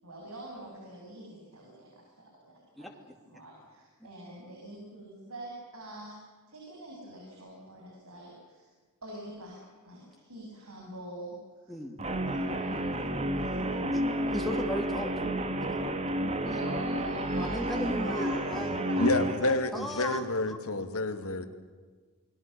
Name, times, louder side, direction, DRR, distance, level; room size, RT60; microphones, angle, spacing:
voice 1, 0.0-2.9 3.3-6.2 6.5-8.7 9.0-11.4 11.6-11.7 12.3-14.4 16.4-19.5, right 1 dB, 75° right, -2 dB, 7.8 m, -44 dB
Guitar, 12.0-19.4, right 1 dB, 30° right, 1.9 m, -31 dB
voice 2, 14.3-15.9 16.5-16.6 17.4-20.2 20.5-20.6, equal, ahead, 0 dB, 2.7 m, -37 dB
voice 3, 19.0-21.4, left 2 dB, 70° left, 7 dB, 2.4 m, -29 dB
29.0 x 21.5 x 6.9 m, 1.5 s
head